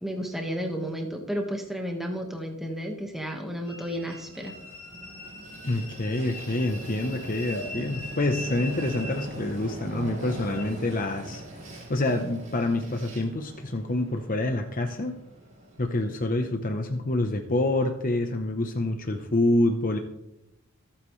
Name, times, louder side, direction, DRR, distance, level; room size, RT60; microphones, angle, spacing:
voice 1, 0.0-4.5, equal, ahead, 1 dB, 1.5 m, -32 dB
Train, 3.6-16.1, right 1 dB, 40° right, 5.2 m, -40 dB
voice 2, 5.6-15.1 15.8-20.0, left 2 dB, 40° left, 5 dB, 0.9 m, -27 dB
25.5 x 9.0 x 3.3 m, 0.86 s
head